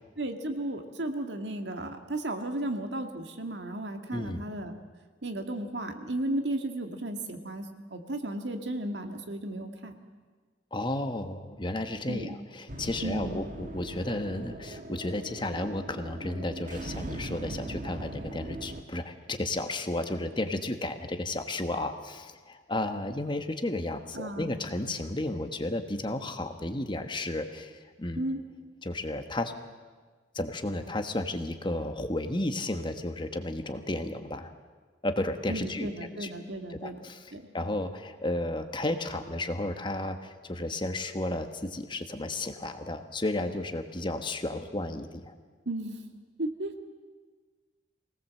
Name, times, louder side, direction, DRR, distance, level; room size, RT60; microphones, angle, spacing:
voice 1, 0.2-4.7 5.2-10.0 12.1-12.3 13.0-13.4 24.1-24.5 28.2-28.4 35.5-37.0 37.3-37.5 45.7-46.0 46.4-46.7, right 1 dB, 70° right, 5 dB, 2.1 m, -34 dB
voice 2, 4.1-4.4 10.7-28.2 28.8-29.5 30.3-34.5 35.0-35.9 36.2-36.3 36.7-45.3, left 1 dB, 25° left, 7 dB, 1.3 m, -33 dB
sound 1, 12.7-18.8, right 1 dB, 45° right, 1.7 m, -40 dB
24.5 x 18.0 x 7.7 m, 1.4 s
head